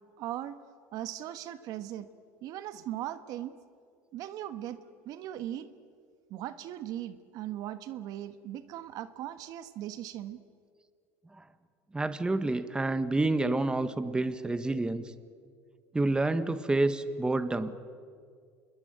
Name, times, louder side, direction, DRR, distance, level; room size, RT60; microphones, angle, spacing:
voice 1, 0.2-0.6 0.9-2.1 2.4-3.5 4.1-4.8 5.0-5.7 6.3-10.4, right 12 dB, 60° right, 11 dB, 1.4 m, -38 dB
voice 2, 11.9-15.0 15.9-17.7, right 2 dB, 10° right, 11 dB, 1.5 m, -28 dB
27.5 x 22.0 x 9.5 m, 2.1 s
supercardioid pair, 95°, 7 cm